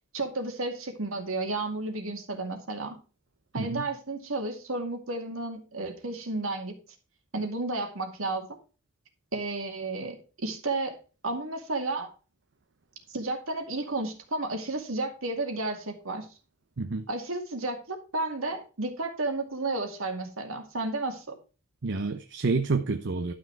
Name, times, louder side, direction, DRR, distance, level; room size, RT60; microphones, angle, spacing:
voice 1, 0.1-3.0 3.5-6.8 7.3-8.6 9.3-11.0 11.2-12.1 13.1-16.3 17.1-21.3, right 2 dB, 75° right, 2.3 m, -32 dB
voice 2, 21.8-23.3, right 3 dB, 60° right, 0.7 m, -28 dB
12.0 x 6.2 x 4.6 m
head